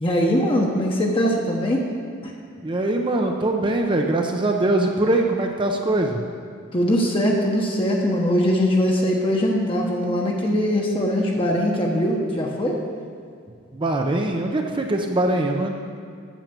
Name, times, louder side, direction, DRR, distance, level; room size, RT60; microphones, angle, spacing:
voice 1, 0.0-1.9 2.2-2.3 6.7-12.8, equal, 25° left, -1 dB, 1.0 m, -21 dB
voice 2, 2.6-6.2 13.7-15.7, right 2 dB, 25° right, 2 dB, 0.6 m, -22 dB
9.0 x 7.4 x 6.8 m, 2.2 s
head